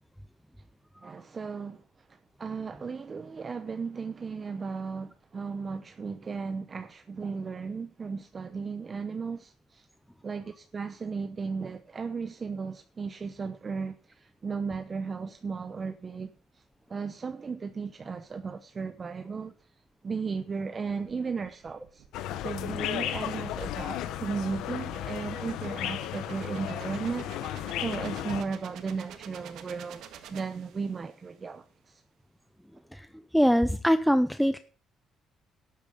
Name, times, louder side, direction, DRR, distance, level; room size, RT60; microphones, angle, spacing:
voice 1, 1.0-1.8 2.1-9.9 10.2-16.3 16.9-19.5 20.0-22.0 22.4-30.0 30.3-32.0, right 5 dB, 30° right, 0.8 m, -35 dB
sound 1, 20.9-31.2, right 9 dB, 75° right, 1.7 m, -49 dB
sound 2, 22.1-28.4, left 12 dB, 85° left, 0.9 m, -34 dB
voice 2, 33.3-34.6, equal, ahead, 0.5 m, -23 dB
12.5 x 8.7 x 5.0 m
cardioid pair, 115°, 0 cm